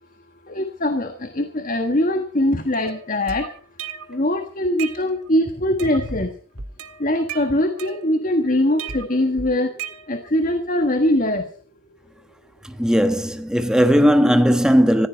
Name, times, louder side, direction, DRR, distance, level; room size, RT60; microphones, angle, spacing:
voice 1, 0.5-3.5 4.1-6.3 7.0-9.7 10.1-11.5, left 1 dB, 40° left, 1.4 m, -22 dB
sound 1, 2.8-4.2 4.6-5.4 5.8-6.3 6.6-8.4 8.8-10.4, right 6 dB, 80° right, 1.9 m, -35 dB
voice 2, 12.8-15.1, equal, 5° right, 1.4 m, -17 dB
18.5 x 15.5 x 4.5 m
head